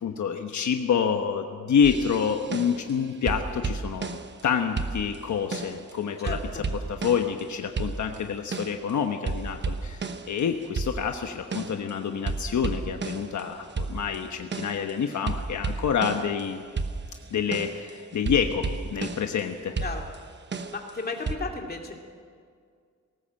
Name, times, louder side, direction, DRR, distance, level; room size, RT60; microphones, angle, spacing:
voice 1, 0.0-4.2 4.4-16.6 17.3-19.7, left 7 dB, 75° left, 5 dB, 1.1 m, -27 dB
sound 1, 1.8-2.9 3.3-4.5 4.8-5.9 6.3-7.5 7.8-8.9 9.3-11.9 12.3-16.4 16.8-19.4 19.8-21.3, right 4 dB, 40° right, 1.0 m, -33 dB
voice 2, 6.2-6.6 19.8-20.0 20.7-21.9, left 3 dB, 35° left, 1 dB, 2.4 m, -34 dB
19.5 x 18.0 x 7.6 m, 2.1 s
wide cardioid pair, 180°, 29 cm